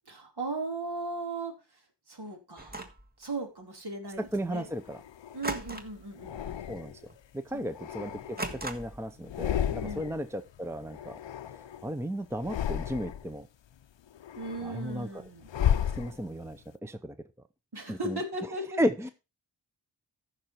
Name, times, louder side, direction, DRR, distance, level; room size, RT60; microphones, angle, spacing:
voice 1, 0.1-2.9 3.2-4.7 5.3-6.6 7.5-7.7 9.8-10.1 14.4-15.5 17.7-18.8, right 2 dB, 60° right, 3 dB, 3.0 m, -37 dB
sound 1, 2.6-3.1 5.4-6.1 6.4-6.7 7.1-7.2 8.4-9.1, right 2 dB, 20° right, 1.6 m, -37 dB
sound 2, 4.3-5.5 6.2-7.1 7.6-8.8 9.2-10.3 10.5-11.9 12.3-13.4 13.8-16.6, left 9 dB, 85° left, 0.7 m, -34 dB
voice 2, 4.3-5.0 6.7-6.9 7.3-8.4 8.6-11.2 11.8-13.5 14.6-15.2 16.0-17.1 17.9-18.2 18.8-19.1, equal, 5° right, 11 dB, 0.7 m, -34 dB
14.0 x 5.8 x 4.4 m, 0.28 s
wide cardioid pair, 65°, 43 cm